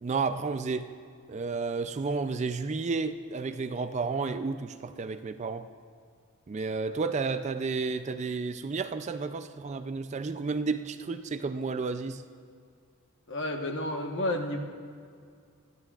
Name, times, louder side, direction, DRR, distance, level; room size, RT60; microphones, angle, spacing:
voice 1, 0.0-0.9 1.3-5.7 6.5-12.2, right 4 dB, 30° right, 10 dB, 0.3 m, -31 dB
voice 2, 13.3-14.6, left 1 dB, 55° left, 3 dB, 1.2 m, -31 dB
27.0 x 11.0 x 2.4 m, 2.2 s
head